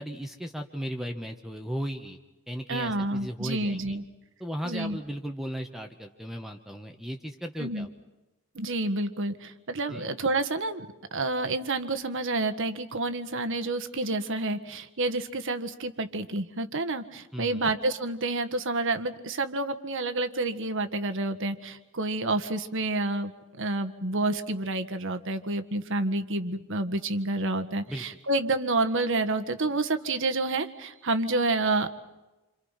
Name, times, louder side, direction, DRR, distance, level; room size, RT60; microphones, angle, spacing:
voice 1, 0.0-2.2 2.5-4.0 4.4-7.9 9.9-10.1 17.3-17.7 27.9-28.0, equal, ahead, 4 dB, 1.3 m, -36 dB
voice 2, 2.7-4.0 4.6-5.0 7.6-7.9 8.5-10.9 11.1-23.3 23.6-31.9, right 2 dB, 60° right, 8 dB, 1.7 m, -29 dB
28.5 x 27.0 x 5.8 m, 1.0 s
head